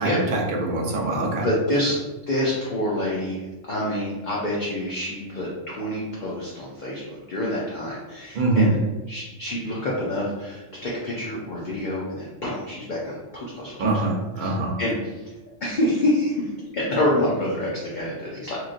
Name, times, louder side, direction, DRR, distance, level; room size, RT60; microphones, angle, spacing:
voice 1, 0.0-1.5 8.3-8.7 13.8-14.7, right 2 dB, 60° right, -1 dB, 0.5 m, -23 dB
voice 2, 1.4-2.0 2.3-3.4 3.7-8.8 9.1-14.1 14.4-15.3 15.6-18.6, left 1 dB, 55° left, -5 dB, 0.5 m, -27 dB
3.1 x 2.4 x 2.4 m, 1.1 s
omnidirectional pair, 1.3 m